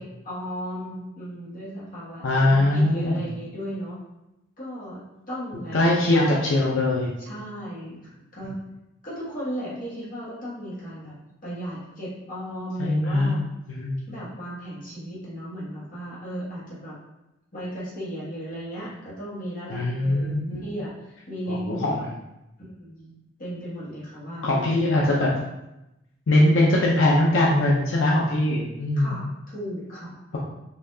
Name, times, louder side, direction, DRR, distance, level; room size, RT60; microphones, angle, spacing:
voice 1, 0.0-4.0 4.6-6.3 7.2-8.6 9.0-13.4 14.1-17.0 17.5-22.0 22.6-23.1 23.4-25.0 28.9-30.4, equal, 45° left, -8 dB, 1.4 m, -36 dB
voice 2, 2.2-3.3 5.7-7.1 12.8-13.3 13.7-14.0 19.7-20.6 21.5-22.0 24.4-25.3 26.3-29.1, left 1 dB, 85° left, -3 dB, 0.6 m, -21 dB
4.2 x 2.7 x 2.6 m, 0.92 s
head